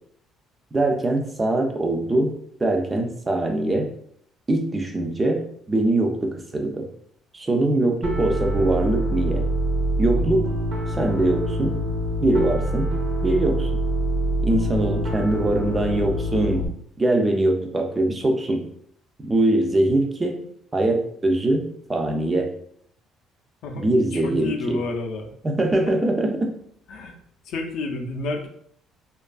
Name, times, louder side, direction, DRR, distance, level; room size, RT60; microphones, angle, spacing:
voice 1, 0.7-3.9 4.5-6.9 7.3-9.4 10.0-10.5 10.9-11.9 12.2-12.9 13.2-13.7 14.4-16.7 17.0-18.7 19.2-20.4 20.7-22.6 23.8-24.8 25.4-26.5, right 1 dB, 15° right, 3 dB, 0.3 m, -22 dB
Piano, 8.0-16.7, right 1 dB, 80° right, 0.8 m, -25 dB
voice 2, 23.6-25.3 25.9-26.0 26.9-27.2 27.4-28.5, left 3 dB, 65° left, 3 dB, 0.4 m, -30 dB
2.5 x 2.3 x 2.3 m, 0.65 s
cardioid pair, 145°, 0 cm